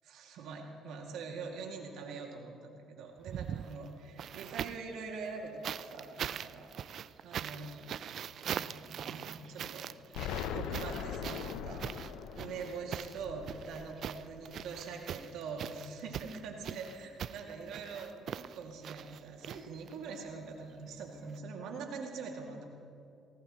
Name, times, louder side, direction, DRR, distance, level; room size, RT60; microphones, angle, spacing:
voice 1, 0.0-6.7 7.2-7.8 8.5-10.2 10.5-11.9 12.3-22.6, right 4 dB, 80° right, 1 dB, 2.3 m, -44 dB
sound 1, 3.2-4.9 5.6-20.2 21.3-21.4, right 9 dB, 60° right, 0.4 m, -42 dB
Explosion, 10.1-15.0, left 8 dB, 85° left, 0.6 m, -41 dB
20.0 x 17.5 x 3.1 m, 2.6 s
cardioid pair, 90°, 0 cm